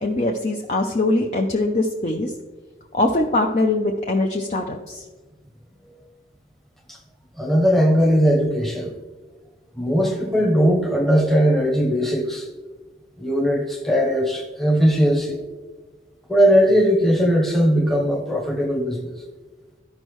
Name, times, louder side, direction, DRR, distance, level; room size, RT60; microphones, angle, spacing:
voice 1, 0.0-2.3 2.9-5.0, left 2 dB, 40° left, 0.5 m, -22 dB
voice 2, 7.4-8.9 9.8-12.5 13.2-15.4 16.3-19.1, equal, ahead, 0.9 m, -19 dB
13.5 x 5.4 x 3.1 m
head